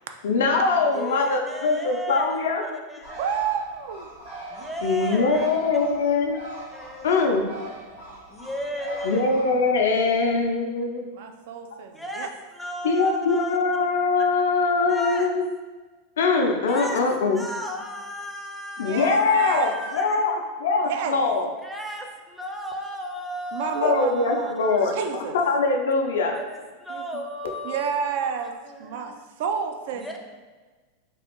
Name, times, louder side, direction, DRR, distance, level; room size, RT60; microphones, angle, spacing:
voice 1, 0.2-2.6 4.8-6.4 7.0-7.5 9.0-11.0 12.8-15.5 16.2-17.4 18.8-21.5 23.8-26.4, left 4 dB, 70° left, 3 dB, 0.4 m, -22 dB
voice 2, 0.9-3.2 4.5-5.5 6.7-7.3 8.3-9.3 11.9-13.6 14.9-15.3 16.7-17.0 17.3-20.2 21.6-24.9 26.3-29.2 29.9-30.2, right 1 dB, ahead, 0 dB, 0.5 m, -35 dB
Bird, 3.0-10.4, right 2 dB, 80° right, 1.1 m, -42 dB
voice 3, 3.2-4.1 11.1-12.3 18.8-19.8 20.9-21.2 23.5-24.5 24.9-25.4 26.9-27.0 27.6-28.5 28.8-29.1 29.4-30.2, right 6 dB, 60° right, 6 dB, 0.3 m, -29 dB
3.3 x 2.5 x 2.8 m, 1.3 s
hypercardioid pair, 95°, 0 cm